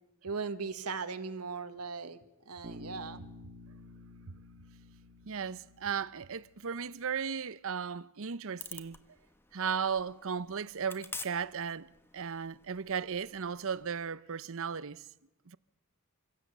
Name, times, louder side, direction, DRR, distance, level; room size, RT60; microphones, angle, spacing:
voice 1, 0.2-2.2 2.5-3.2, right 4 dB, 90° right, 1.5 m, -38 dB
Bass guitar, 2.6-6.7, left 1 dB, 35° right, 1.7 m, -51 dB
voice 2, 5.3-9.0 9.5-15.0 15.5-15.6, right 6 dB, 65° right, 0.7 m, -36 dB
sound 1, 8.6-14.1, left 3 dB, 10° left, 1.2 m, -49 dB
27.5 x 17.0 x 8.1 m
head